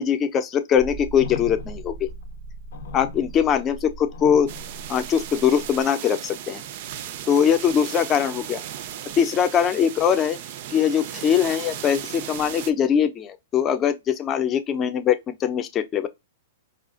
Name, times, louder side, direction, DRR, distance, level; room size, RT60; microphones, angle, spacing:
voice 1, 0.0-2.1 2.9-4.5 4.9-6.6 7.3-8.6 9.2-10.4 10.7-16.1, left 8 dB, 25° left, 0.5 m, -22 dB
sound 1, 0.8-5.8, left 1 dB, 80° left, 0.7 m, -37 dB
sound 2, 4.5-12.7, right 10 dB, 55° right, 0.4 m, -36 dB
4.8 x 2.4 x 2.4 m
hypercardioid pair, 135°, 0 cm